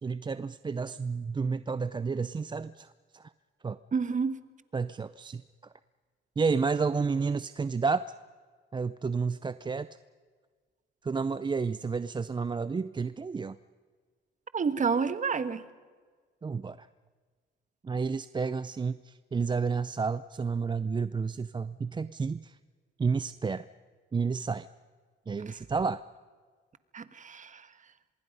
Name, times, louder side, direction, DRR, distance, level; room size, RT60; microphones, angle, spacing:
voice 1, 0.0-2.9 3.1-3.3 3.6-3.8 4.7-5.4 6.4-8.1 8.7-9.9 11.0-13.6 16.4-16.9 17.8-22.6 23.0-23.7 24.1-24.7 25.3-26.0, right 5 dB, 25° right, 15 dB, 0.5 m, -30 dB
voice 2, 3.9-4.4 14.5-15.6 26.9-27.6, right 5 dB, 40° right, 13 dB, 1.3 m, -29 dB
25.0 x 22.5 x 5.4 m, 1.6 s
cardioid pair, 90°, 20 cm